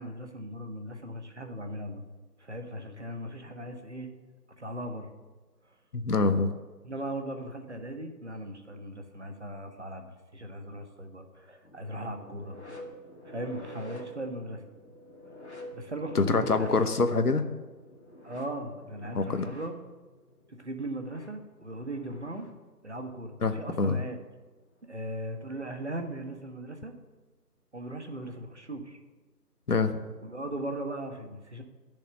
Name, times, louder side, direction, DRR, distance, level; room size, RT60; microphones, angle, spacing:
voice 1, 0.0-2.1 2.4-4.1 4.6-5.1 5.6-5.7 6.8-10.1 10.3-12.6 13.2-14.6 15.7-16.7 18.2-19.8 20.5-22.5 22.8-24.2 24.9-26.9 27.7-29.0 30.2-31.6, right 1 dB, 45° right, 6 dB, 1.4 m, -38 dB
voice 2, 5.9-6.5 16.1-17.4 19.1-19.4 23.4-24.0 29.7-30.0, left 3 dB, 65° left, 8 dB, 1.1 m, -25 dB
sound 1, 11.6-22.6 23.9-24.1 25.0-25.1, left 1 dB, 45° left, 1.9 m, -48 dB
10.5 x 6.8 x 8.9 m, 1.3 s
figure-of-eight pair, 170°, 48 cm